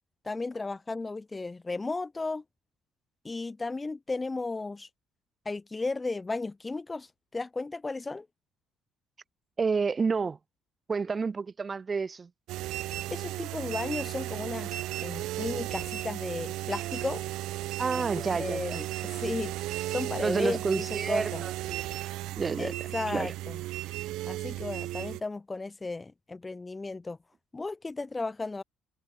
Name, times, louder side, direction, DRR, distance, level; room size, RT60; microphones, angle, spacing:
voice 1, 0.2-2.4 3.2-4.9 5.5-8.3 13.1-17.2 18.0-18.9 19.1-19.5 19.9-21.4 22.6-23.6 24.3-27.2 27.5-28.6, left 3 dB, 15° left, 1.8 m, -34 dB
voice 2, 9.6-10.4 10.9-12.3 17.8-18.8 20.2-21.8 22.4-22.7 23.1-23.3, right 5 dB, 20° right, 3.1 m, -29 dB
sound 1, 12.5-25.2, right 16 dB, 75° right, 1.5 m, -35 dB
cardioid pair, 155°, 0 cm